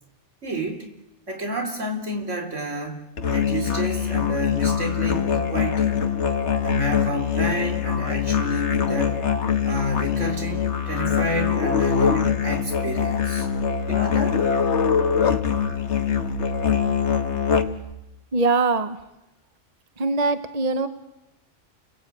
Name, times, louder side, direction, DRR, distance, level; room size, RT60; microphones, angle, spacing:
voice 1, 0.4-0.9 1.3-3.0 3.3-6.0 6.6-9.2 9.6-13.5 13.9-14.4, equal, 80° right, 3 dB, 4.2 m, -29 dB
Musical instrument, 3.2-17.9, left 7 dB, 65° left, 1.7 m, -23 dB
voice 2, 18.3-19.0 20.0-20.9, right 3 dB, 35° right, 9 dB, 1.2 m, -22 dB
30.0 x 19.5 x 8.7 m, 0.92 s
omnidirectional pair, 1.3 m